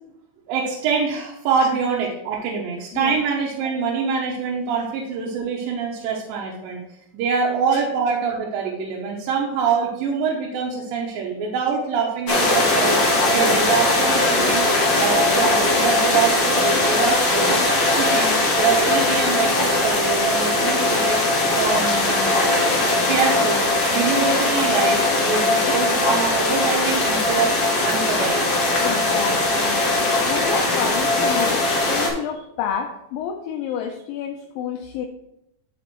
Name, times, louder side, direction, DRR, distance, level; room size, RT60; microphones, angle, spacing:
voice 1, 0.5-6.8 7.1-13.0 13.3-14.7 15.0-17.7 18.0-21.3 21.5-22.3 23.1-27.6 27.8-28.7 30.6-30.7, right 5 dB, 85° right, -3 dB, 2.6 m, -24 dB
sound 1, 12.3-32.1, left 2 dB, 60° left, 1.0 m, -20 dB
voice 2, 28.8-29.9 30.2-35.1, left 8 dB, 80° left, 3 dB, 2.2 m, -30 dB
10.5 x 5.0 x 3.0 m, 0.85 s
omnidirectional pair, 4.2 m